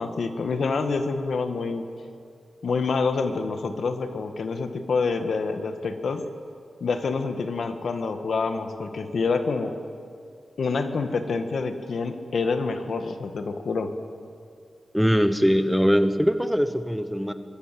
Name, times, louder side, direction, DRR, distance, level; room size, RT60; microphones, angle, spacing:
voice 1, 0.0-1.9 2.6-6.2 6.8-9.7 10.6-13.9, left 4 dB, 70° left, 7 dB, 1.9 m, -27 dB
voice 2, 14.9-17.3, equal, ahead, 9 dB, 1.0 m, -21 dB
25.0 x 22.5 x 7.8 m, 2.3 s
wide cardioid pair, 140°, 0 cm